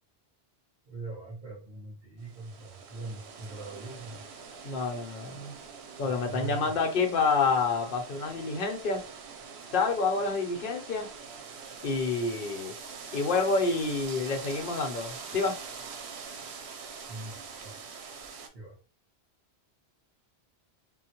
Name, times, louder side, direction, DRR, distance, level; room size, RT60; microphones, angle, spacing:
voice 1, 0.9-4.2 6.0-6.7 17.1-17.9 18.5-18.8, right 3 dB, 65° right, -3 dB, 1.9 m, -42 dB
sound 1, 2.2-18.5, right 5 dB, 90° right, 0.9 m, -44 dB
voice 2, 4.6-5.6 6.0-9.0 9.7-11.1 11.8-12.7 13.1-15.6, left 4 dB, 60° left, 3 dB, 0.8 m, -28 dB
3.7 x 2.1 x 2.9 m, 0.35 s
omnidirectional pair, 1.1 m